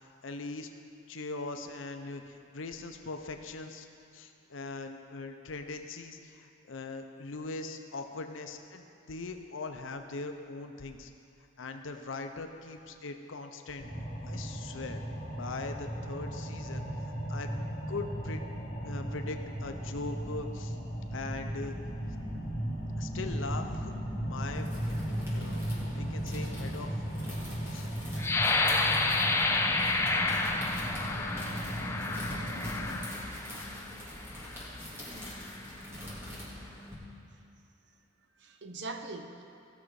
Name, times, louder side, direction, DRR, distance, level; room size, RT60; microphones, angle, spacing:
voice 1, 0.2-0.7 1.1-3.9 4.1-11.1 11.6-13.8 14.3-15.0 15.3-16.9 17.3-17.5 17.9-18.4 18.8-20.8 21.1-21.8 23.0-23.9 24.2-24.7 25.3-26.9 27.7-27.9, left 3 dB, 80° left, 5 dB, 0.7 m, -40 dB
sound 1, 13.8-33.0, equal, 50° left, 2.2 m, -36 dB
sound 2, 24.3-36.9, left 1 dB, 10° right, 2.3 m, -45 dB
sound 3, 28.2-33.9 34.5-34.7 35.1-35.6, left 3 dB, 15° left, 0.4 m, -30 dB
voice 2, 36.2-36.6 38.4-39.4, right 3 dB, 60° right, 6 dB, 0.7 m, -43 dB
16.0 x 6.2 x 4.8 m, 2.6 s
head